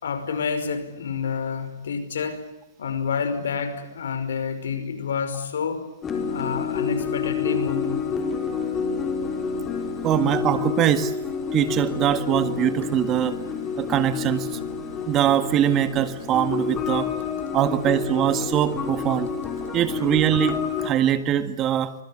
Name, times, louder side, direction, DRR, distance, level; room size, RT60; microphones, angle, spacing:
voice 1, 0.0-2.4 2.8-5.9 6.3-8.3, left 6 dB, 80° left, 10 dB, 5.3 m, -28 dB
sound 1, 6.0-20.9, left 6 dB, 15° left, 4.4 m, -28 dB
voice 2, 10.0-11.1 11.5-13.4 13.8-14.6 15.1-17.1 17.5-19.3 19.7-21.9, right 11 dB, 25° right, 11 dB, 1.8 m, -22 dB
25.0 x 23.0 x 8.8 m, 0.89 s
hypercardioid pair, 145°, 0 cm